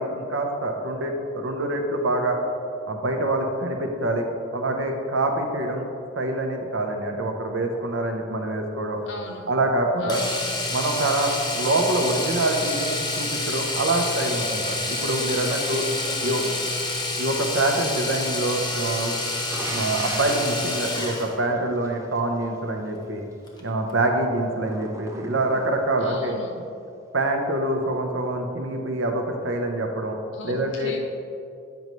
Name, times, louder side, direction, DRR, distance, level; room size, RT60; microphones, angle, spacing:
voice 1, 0.0-2.4 2.9-5.8 6.2-9.0 9.5-10.2 10.7-15.8 16.2-16.4 17.2-19.2 19.6-23.2 23.6-26.4 27.1-30.2 30.4-30.9, right 2 dB, 75° right, 3 dB, 0.7 m, -25 dB
voice 2, 9.1-9.4 10.0-10.6 15.9-16.6 26.0-26.6 30.3-31.0, left 2 dB, 65° left, 2 dB, 0.9 m, -37 dB
Domestic sounds home sounds, 10.1-21.3 23.5-23.6 23.9-24.0, left 2 dB, 20° left, 0.8 m, -28 dB
sound 1, 19.5-22.2 24.6-26.0, right 2 dB, 15° right, 0.4 m, -38 dB
7.9 x 5.2 x 3.1 m, 2.5 s
head